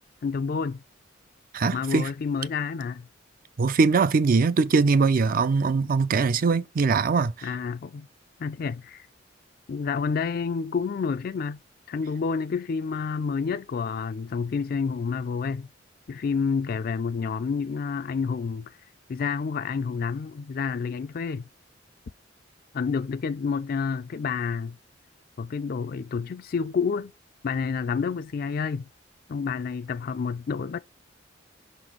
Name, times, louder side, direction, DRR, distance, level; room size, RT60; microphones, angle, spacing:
voice 1, 0.2-0.8 1.6-3.0 7.4-8.1 8.4-9.1 9.7-11.6 11.9-15.7 16.1-18.7 19.1-21.4 22.7-24.8 25.4-27.1 27.4-28.9 29.3-30.8, left 5 dB, 50° left, 0.4 m, -29 dB
voice 2, 1.5-2.1 3.6-7.5, right 4 dB, 50° right, 0.4 m, -22 dB
5.8 x 4.1 x 4.5 m
head